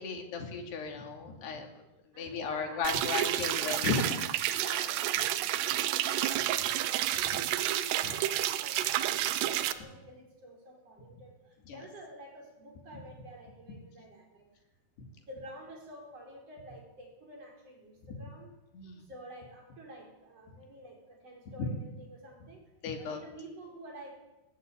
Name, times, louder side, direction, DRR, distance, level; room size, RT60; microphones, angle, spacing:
voice 1, 0.0-1.7 2.2-4.7 7.2-7.4 8.0-8.1 11.7-11.8 12.9-13.0 18.1-18.2 18.7-19.1 21.6-21.8 22.8-23.2, left 5 dB, 90° left, 4 dB, 4.8 m, -35 dB
voice 2, 2.1-3.0 4.5-7.4 7.7-14.5 15.2-18.5 19.0-22.6 23.0-24.2, right 1 dB, 40° right, 0 dB, 6.0 m, -49 dB
sound 1, 2.8-9.7, right 13 dB, 85° right, 3.1 m, -30 dB
20.0 x 16.5 x 9.0 m, 0.98 s
omnidirectional pair, 4.6 m